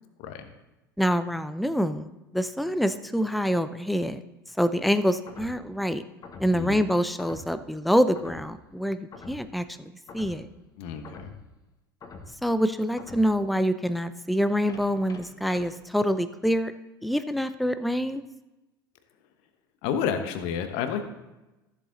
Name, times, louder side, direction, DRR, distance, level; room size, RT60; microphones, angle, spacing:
voice 1, 1.0-4.2 4.6-6.0 6.4-10.5 12.4-16.7 17.0-18.2, equal, ahead, 12 dB, 0.5 m, -26 dB
sound 1, 5.3-5.7 6.2-6.7 7.2-7.6 8.1-8.6 9.1-9.5 10.1-10.5 11.0-11.5 12.0-12.4 13.0-13.4 14.7-15.7, left 4 dB, 30° left, 1.5 m, -45 dB
voice 2, 10.8-11.3 19.8-21.0, left 7 dB, 55° left, 8 dB, 1.2 m, -30 dB
13.5 x 7.5 x 3.9 m, 1.0 s
hypercardioid pair, 80°, 12 cm